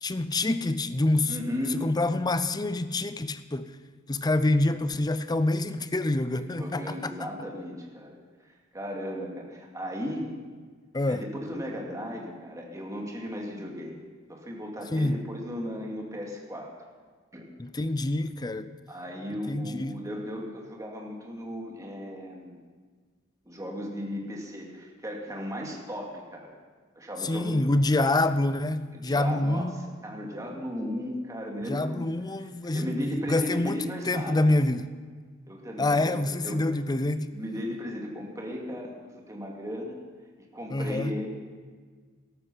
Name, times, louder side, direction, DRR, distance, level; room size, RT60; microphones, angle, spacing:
voice 1, 0.0-1.4 1.7-3.7 4.1-7.1 10.9-11.2 14.9-15.2 17.6-18.7 19.5-20.0 27.2-29.7 31.7-34.9 35.8-37.3 40.7-41.2, left 2 dB, 20° left, 12 dB, 0.5 m, -26 dB
voice 2, 1.3-1.8 6.3-8.2 8.5-10.3 11.1-14.0 14.3-16.7 17.3-17.5 18.9-22.6 23.5-26.6 27.0-27.6 28.9-29.6 30.0-32.1 32.7-34.4 35.5-36.6 36.9-37.0 37.3-40.0 40.5-41.3, equal, 15° right, -1 dB, 2.3 m, -36 dB
14.0 x 12.5 x 5.7 m, 1.5 s
head